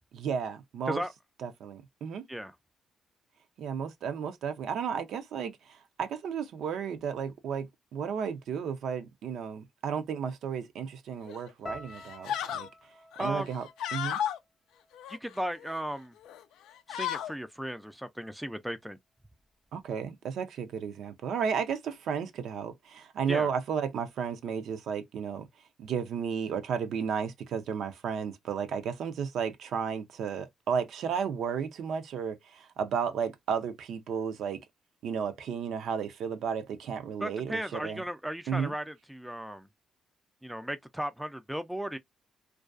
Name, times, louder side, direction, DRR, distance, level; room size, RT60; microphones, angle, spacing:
voice 1, 0.1-1.0 1.4-2.2 3.6-7.7 7.9-12.7 13.2-14.2 19.7-25.5 25.8-34.6 35.0-38.0 38.5-38.7, right 7 dB, 75° right, 0.4 m, -33 dB
sound 1, 11.2-11.5 11.9-12.7 13.1-14.4 14.9-15.8 16.2-16.4 16.7-17.3, left 10 dB, 90° left, 0.3 m, -35 dB
sound 2, 11.7-15.9 16.1-16.9 17.5-17.7, left 2 dB, 40° left, 0.6 m, -50 dB
voice 2, 13.2-13.5 15.1-16.1 16.9-19.0 23.3-23.5 37.2-39.7 40.4-42.0, equal, 5° right, 0.3 m, -36 dB
2.4 x 2.2 x 2.4 m
cardioid pair, 90°, 0 cm